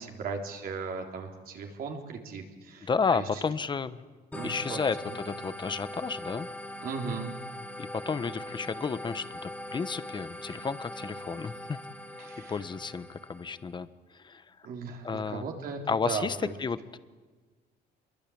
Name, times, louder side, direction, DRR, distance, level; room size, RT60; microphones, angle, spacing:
voice 1, 0.0-3.2 4.3-4.8 5.1-5.2 6.8-7.3 12.2-12.6 14.6-15.8 16.1-16.5, right 5 dB, 60° right, 2 dB, 3.7 m, -37 dB
voice 2, 2.8-4.0 4.4-6.5 7.8-11.8 12.2-14.6 15.0-15.5 15.9-17.0, left 5 dB, 25° left, 13 dB, 1.1 m, -32 dB
sound 1, 4.3-13.7, left 1 dB, 10° left, 3.1 m, -41 dB
26.5 x 22.5 x 8.7 m, 1.4 s
cardioid pair, 110°, 17 cm